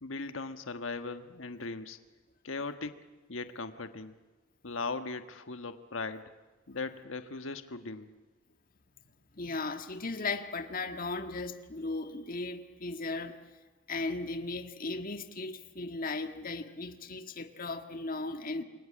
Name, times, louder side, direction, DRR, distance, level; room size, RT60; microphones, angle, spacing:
voice 1, 0.0-2.0 2.4-3.0 3.3-4.1 4.6-6.2 6.7-8.1, left 3 dB, 90° left, 8 dB, 1.4 m, -38 dB
voice 2, 9.3-13.4 13.9-18.6, left 3 dB, 45° left, 6 dB, 1.6 m, -36 dB
28.0 x 22.5 x 8.7 m, 1.3 s
head